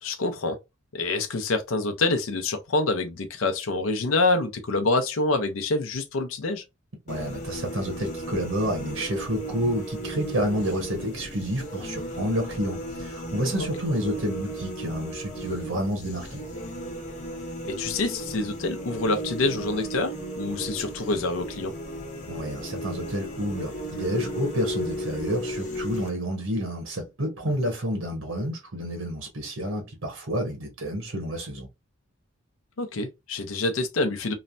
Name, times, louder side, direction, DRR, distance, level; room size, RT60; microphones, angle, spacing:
voice 1, 0.0-0.6 0.9-6.6 13.6-13.7 17.6-21.7 32.8-34.3, left 2 dB, 70° left, 0.5 m, -26 dB
sound 1, 7.1-26.1, right 1 dB, 35° left, 0.9 m, -35 dB
voice 2, 7.1-16.4 22.3-31.7, equal, 85° right, 1.0 m, -29 dB
3.1 x 2.1 x 2.5 m
head